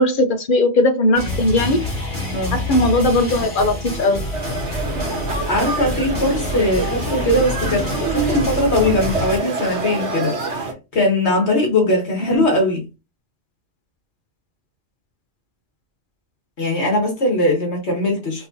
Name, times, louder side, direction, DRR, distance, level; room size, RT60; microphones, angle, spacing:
voice 1, 0.0-1.8 2.5-4.2 12.3-12.4, left 1 dB, 50° left, 0.8 m, -18 dB
sound 1, 1.1-9.4, left 1 dB, 35° left, 3.0 m, -27 dB
voice 2, 2.3-2.6 5.5-10.7 10.9-12.8 16.6-18.5, left 1 dB, 70° left, 1.7 m, -20 dB
sound 2, 4.3-10.7, right 4 dB, 85° right, 1.5 m, -26 dB
5.2 x 2.9 x 2.7 m
omnidirectional pair, 1.2 m